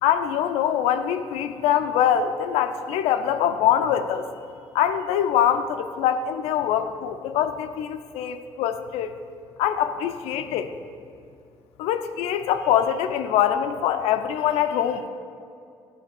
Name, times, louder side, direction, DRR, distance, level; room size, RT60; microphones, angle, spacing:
voice 1, 0.0-4.3 4.7-9.1 9.6-10.7 11.8-15.1, left 9 dB, 90° left, 9 dB, 0.6 m, -23 dB
11.5 x 4.9 x 7.1 m, 2.4 s
cardioid pair, 90°, 10 cm